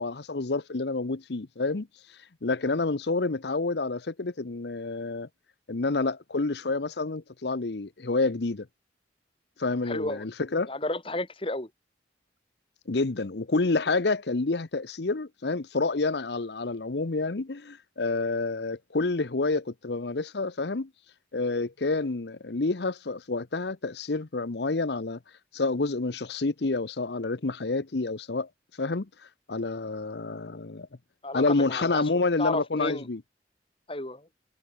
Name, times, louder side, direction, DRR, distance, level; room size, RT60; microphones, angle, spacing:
voice 1, 0.0-1.9 2.4-5.3 5.7-8.7 9.6-10.7 12.9-20.9 21.3-25.2 25.5-28.5 28.8-29.1 29.5-30.9 31.3-33.2, left 3 dB, 70° left, 0.9 m, -28 dB
voice 2, 9.9-10.3 10.7-11.7 31.2-32.0 32.4-33.1 33.9-34.2, left 2 dB, 30° left, 2.5 m, -32 dB
head